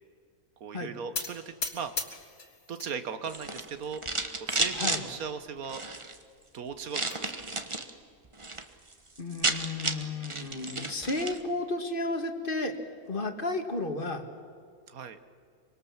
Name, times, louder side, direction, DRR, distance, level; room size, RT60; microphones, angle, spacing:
voice 1, 0.6-1.9 2.7-4.0 4.4-5.8 6.5-7.5 14.9-15.2, right 6 dB, 80° right, 11 dB, 1.6 m, -38 dB
sound 1, 1.1-2.9 3.3-3.9 4.5-4.6 4.9-5.0 5.4-5.5 6.6-7.2, left 3 dB, 55° left, 2.4 m, -38 dB
sound 2, 3.2-5.0 5.6-6.2 6.9-7.9 8.2-8.6 8.9-9.0 9.2-11.4, right 3 dB, 20° right, 1.2 m, -32 dB
voice 2, 4.7-5.0 9.2-12.7 13.1-14.2, left 2 dB, 40° left, 6 dB, 1.9 m, -32 dB
24.5 x 24.5 x 7.3 m, 2.3 s
omnidirectional pair, 1.5 m